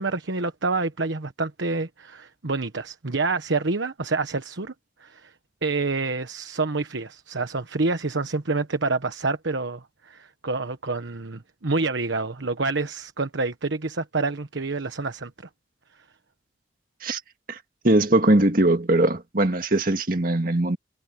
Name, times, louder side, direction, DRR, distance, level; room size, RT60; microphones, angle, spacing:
voice 1, 0.0-4.7 5.0-5.3 5.6-15.3, right 3 dB, 80° right, 1.2 m, -27 dB
voice 2, 17.8-20.8, right 1 dB, 50° right, 1.9 m, -20 dB
head